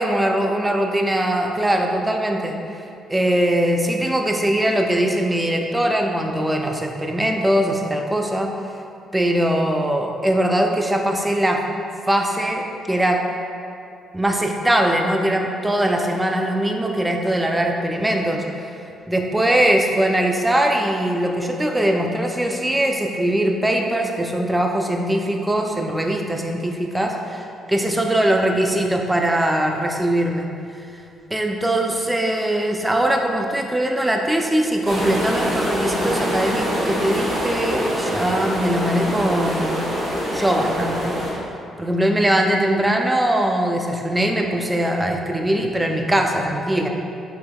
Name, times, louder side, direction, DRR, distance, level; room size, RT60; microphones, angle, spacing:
voice 1, 0.0-2.8 3.1-8.5 9.1-11.6 12.1-13.2 14.1-18.7 19.1-30.5 30.7-30.8 31.3-39.8 40.3-41.2 41.8-46.9, right 1 dB, 10° right, 2 dB, 0.3 m, -21 dB
sound 1, 34.8-41.3, equal, 60° right, 0.9 m, -24 dB
3.4 x 2.9 x 2.2 m, 2.6 s
cardioid pair, 90°, 0 cm